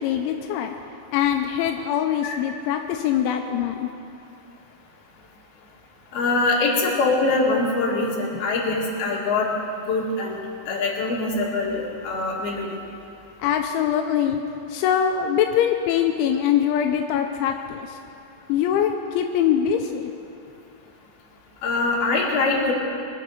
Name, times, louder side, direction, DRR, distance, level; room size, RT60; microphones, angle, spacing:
voice 1, 0.0-4.0 13.4-18.0 18.5-20.3, left 9 dB, 85° left, 4 dB, 3.0 m, -23 dB
voice 2, 6.1-9.5 9.9-10.4 10.7-12.7 21.6-22.7, left 3 dB, 60° left, -3 dB, 3.7 m, -23 dB
23.0 x 7.7 x 6.5 m, 2.6 s
omnidirectional pair, 5.4 m